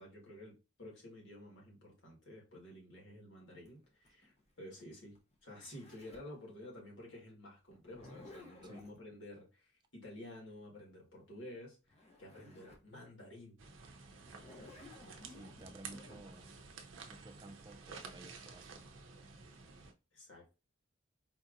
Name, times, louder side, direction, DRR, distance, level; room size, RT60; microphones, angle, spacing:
voice 1, 0.0-5.2 5.4-11.8 12.2-13.6 20.1-20.5, left 1 dB, 70° left, 1.7 m, -52 dB
Zipper (clothing), 3.7-6.4 7.7-9.0 11.6-11.7 11.9-12.9 13.4-13.5 14.2-16.2, left 2 dB, 30° left, 0.7 m, -56 dB
sound 1, 13.6-19.9, right 5 dB, 80° right, 0.6 m, -52 dB
voice 2, 15.3-16.5 17.0-18.8, right 2 dB, 20° right, 0.4 m, -55 dB
4.4 x 2.7 x 2.5 m
head